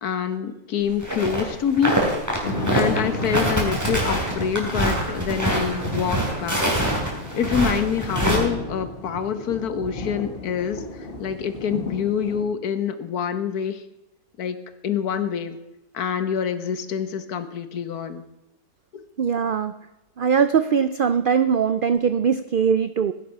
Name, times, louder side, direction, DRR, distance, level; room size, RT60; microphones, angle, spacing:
voice 1, 0.0-2.0 2.7-6.8 7.3-13.8 14.4-14.6 14.8-15.6 15.9-18.2 18.9-19.1, left 7 dB, 85° left, 11 dB, 1.6 m, -26 dB
sound 1, 1.0-1.4 1.7-8.4, right 1 dB, 10° right, 3.1 m, -24 dB
sound 2, 2.4-12.4, left 1 dB, 40° left, 1.9 m, -33 dB
voice 2, 19.2-19.7 20.2-23.1, right 7 dB, 85° right, 13 dB, 0.4 m, -21 dB
16.0 x 9.9 x 5.4 m, 0.98 s
omnidirectional pair, 1.6 m